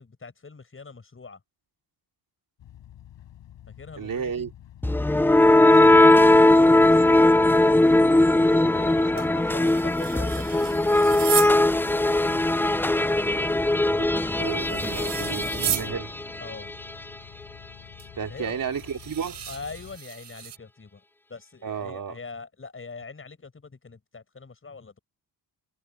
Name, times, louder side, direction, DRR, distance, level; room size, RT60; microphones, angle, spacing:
voice 1, 0.0-1.4 3.7-4.5 5.1-7.2 7.6-10.8 16.4-16.7 18.3-18.6 19.5-21.0 21.3-25.0, left 4 dB, 30° left, 5.7 m, -43 dB
sound 1, 2.6-20.0, left 11 dB, 85° left, 7.1 m, -48 dB
voice 2, 4.0-4.5 13.9-16.1 18.1-19.4 21.6-22.2, right 7 dB, 50° right, 2.8 m, -33 dB
sound 2, 4.8-16.7, left 1 dB, 5° left, 0.4 m, -19 dB
sound 3, 9.2-11.6 14.0-15.9 18.0-18.1 18.7-20.6, right 11 dB, 75° right, 3.4 m, -33 dB
cardioid pair, 95°, 42 cm